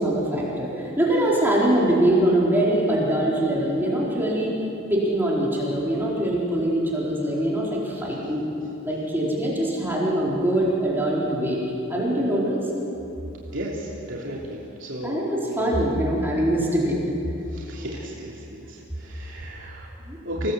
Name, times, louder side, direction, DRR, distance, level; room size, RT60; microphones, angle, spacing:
voice 1, 0.0-4.6 4.9-8.4 8.8-11.6 11.9-12.6 15.0-17.0 20.0-20.2, right 1 dB, 10° right, -6 dB, 4.3 m, -23 dB
voice 2, 13.5-15.2 15.5-15.7 17.5-19.9 20.2-20.5, equal, 60° right, -4 dB, 3.2 m, -34 dB
27.5 x 18.0 x 8.2 m, 2.9 s
head